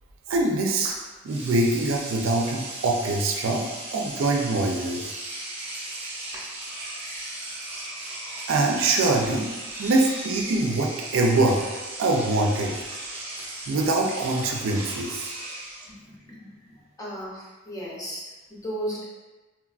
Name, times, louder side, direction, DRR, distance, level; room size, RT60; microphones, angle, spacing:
voice 1, 0.3-1.0 1.2-5.1 8.5-9.5 9.8-11.6 12.0-12.7 13.7-15.3, right 2 dB, 85° right, 0 dB, 0.4 m, -24 dB
Engine / Domestic sounds home sounds, 0.8-1.0 1.3-15.9, right 2 dB, 30° right, 0.7 m, -37 dB
voice 2, 9.7-10.2 15.4-15.5 15.9-19.0, equal, 20° left, -6 dB, 0.6 m, -36 dB
3.2 x 2.2 x 2.3 m, 1.2 s
head